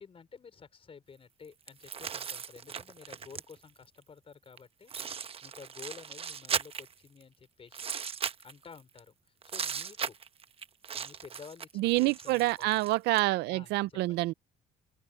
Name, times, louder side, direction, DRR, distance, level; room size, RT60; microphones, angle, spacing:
voice 1, 0.0-7.9 8.4-9.2 9.4-10.2 10.9-12.8 13.5-14.2, left 6 dB, 35° left, 4.9 m, -52 dB
sound 1, 1.7-3.7 4.6-4.7 4.9-7.2 7.7-9.0 9.4-13.2, right 7 dB, 35° right, 0.9 m, -38 dB
voice 2, 11.8-14.3, right 20 dB, 85° right, 0.5 m, -27 dB
open air
cardioid pair, 110°, 17 cm